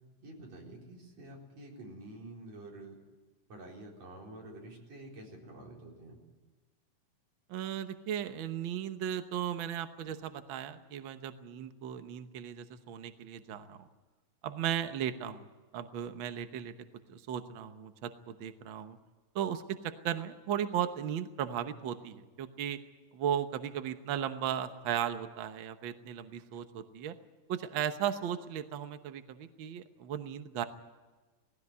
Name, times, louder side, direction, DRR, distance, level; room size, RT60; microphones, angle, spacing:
voice 1, 0.2-3.0 3.5-6.2, right 1 dB, 55° right, -1 dB, 5.4 m, -48 dB
voice 2, 7.5-13.9 14.4-15.4 15.7-16.7 17.1-19.0 19.3-22.8 23.1-27.2 27.5-30.6, right 9 dB, 80° right, 9 dB, 1.1 m, -36 dB
18.5 x 16.5 x 9.7 m, 1.2 s
omnidirectional pair, 3.7 m